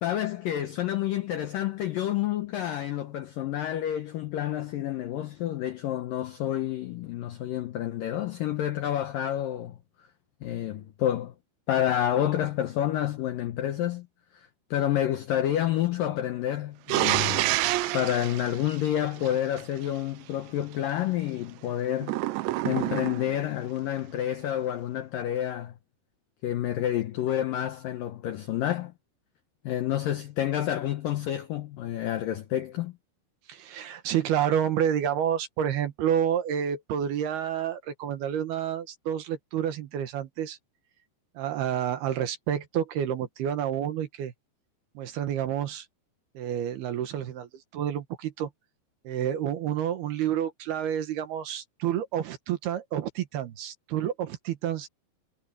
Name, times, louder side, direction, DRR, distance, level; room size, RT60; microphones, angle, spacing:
voice 1, 0.0-9.8 10.4-11.3 11.7-14.1 14.3-17.5 17.9-22.2 22.6-25.7 26.4-28.9 29.6-32.9, left 11 dB, 75° left, 2.0 m, -29 dB
sound 1, 16.9-19.6 22.0-23.4, right 17 dB, 85° right, 3.0 m, -28 dB
voice 2, 33.5-40.6 41.4-44.3 45.0-45.9 46.3-48.5 49.0-54.9, right 9 dB, 65° right, 3.1 m, -29 dB
omnidirectional pair, 5.3 m